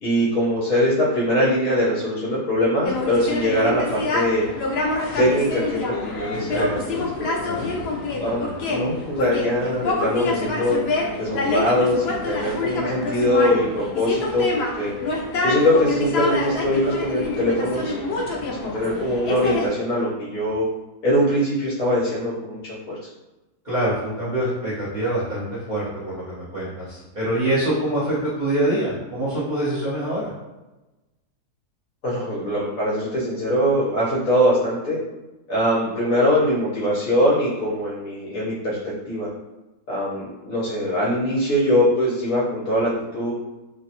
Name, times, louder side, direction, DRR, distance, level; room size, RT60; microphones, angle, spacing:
voice 1, 0.0-4.5 5.2-7.4 8.2-10.8 11.2-14.9 15.4-18.3 18.6-20.7 21.0-23.0 32.0-35.0 35.5-38.8 39.1-39.3 39.9-43.3, equal, 65° left, -7 dB, 1.1 m, -22 dB
sound 1, 2.8-19.7, left 3 dB, 90° left, 0.5 m, -27 dB
voice 2, 6.5-6.9 7.4-7.7 8.3-8.5 23.6-30.3, right 1 dB, 35° right, -12 dB, 1.0 m, -25 dB
3.2 x 2.2 x 2.8 m, 1.1 s
omnidirectional pair, 1.7 m